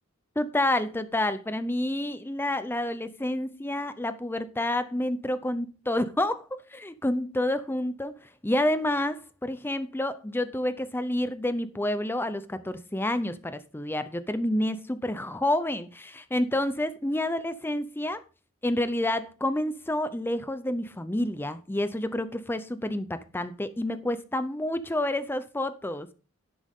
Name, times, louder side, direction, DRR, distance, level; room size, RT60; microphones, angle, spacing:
voice 1, 0.4-18.2 18.6-26.1, left 1 dB, 10° left, 0.6 m, -29 dB
11.5 x 10.5 x 3.6 m
head